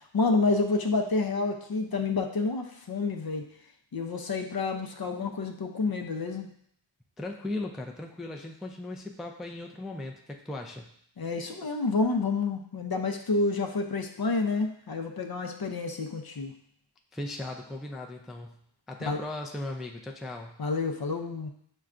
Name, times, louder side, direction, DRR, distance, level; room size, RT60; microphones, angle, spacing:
voice 1, 0.1-3.4 3.9-6.5 11.2-16.5 19.1-19.2 20.6-21.5, left 3 dB, 50° left, 3 dB, 0.6 m, -29 dB
voice 2, 7.2-10.9 17.1-18.6 18.9-20.6, left 2 dB, ahead, 1 dB, 0.3 m, -37 dB
6.3 x 2.3 x 2.4 m, 0.67 s
wide cardioid pair, 40°, 47 cm